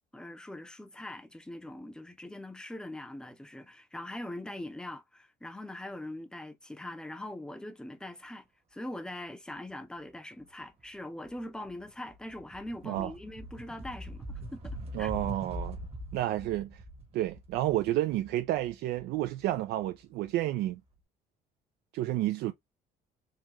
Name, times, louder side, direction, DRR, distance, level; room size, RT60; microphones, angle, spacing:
voice 1, 0.1-15.1, left 1 dB, 5° left, 0.6 m, -42 dB
sound 1, 10.8-11.0 11.4-20.3, right 1 dB, 35° right, 1.1 m, -43 dB
voice 2, 14.9-15.8 16.1-16.8 17.1-20.8 21.9-22.5, right 14 dB, 80° right, 0.4 m, -30 dB
3.7 x 2.7 x 3.0 m
cardioid pair, 110°, 17 cm